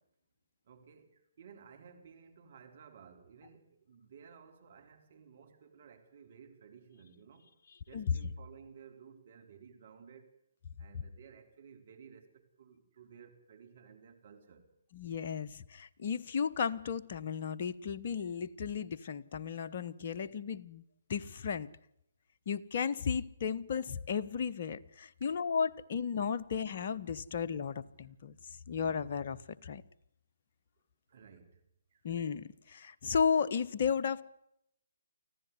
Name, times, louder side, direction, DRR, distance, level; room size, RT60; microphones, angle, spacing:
voice 1, 0.6-7.6 7.9-10.3 10.8-14.7 19.4-19.5 25.2-25.4 31.1-31.6 31.9-32.0, right 6 dB, 50° right, 4.0 m, -56 dB
voice 2, 14.9-20.8 21.1-21.7 22.5-28.3 28.7-29.8 32.0-34.2, left 6 dB, 50° left, 1.1 m, -34 dB
25.0 x 15.5 x 9.6 m
figure-of-eight pair, 140°, 0 cm